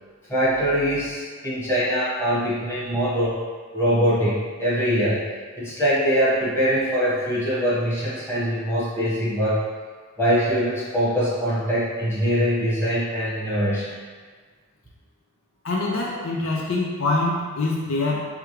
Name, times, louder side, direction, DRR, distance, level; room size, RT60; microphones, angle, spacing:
voice 1, 0.3-3.4 3.7-5.2 5.6-9.6 10.2-13.9, equal, 10° left, -10 dB, 1.5 m, -23 dB
voice 2, 15.6-18.3, left 2 dB, 65° left, -2 dB, 0.5 m, -24 dB
4.8 x 3.4 x 3.3 m, 1.5 s
head